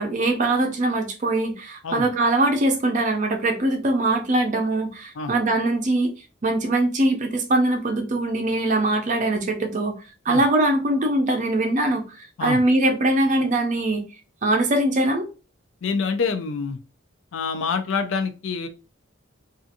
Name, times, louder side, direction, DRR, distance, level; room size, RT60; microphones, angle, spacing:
voice 1, 0.0-6.1 6.4-9.9 10.3-12.0 12.4-14.0 14.4-15.2, right 2 dB, 40° right, 4 dB, 0.5 m, -22 dB
voice 2, 15.8-16.8 17.3-18.7, left 5 dB, 75° left, 7 dB, 0.4 m, -26 dB
2.7 x 2.4 x 2.5 m, 0.32 s
head